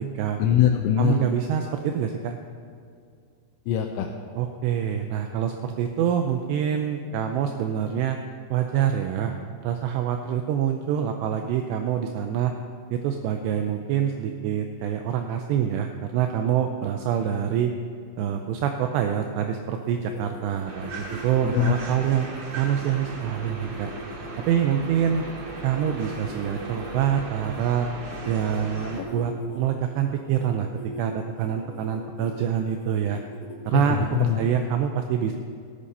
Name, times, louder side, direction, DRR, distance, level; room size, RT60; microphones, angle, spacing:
voice 1, 0.4-1.2 3.7-4.1 21.4-21.8 29.0-29.3 33.7-34.4, left 10 dB, 85° left, 3 dB, 3.1 m, -23 dB
voice 2, 1.0-2.4 4.4-8.2 8.5-9.3 9.6-12.5 12.9-17.7 18.2-22.3 22.6-23.9 24.4-25.3 25.6-27.9 28.3-30.7 31.0-33.2 33.7-35.3, right 9 dB, 85° right, 5 dB, 2.5 m, -26 dB
sound 1, 19.8-27.6 28.1-29.7 30.2-30.5 30.7-31.0 31.4-32.3 32.8-34.5, equal, 40° left, 2.6 m, -42 dB
sound 2, 20.7-29.0, right 3 dB, 50° right, 2.3 m, -38 dB
17.5 x 8.4 x 5.5 m, 2.3 s
omnidirectional pair, 5.5 m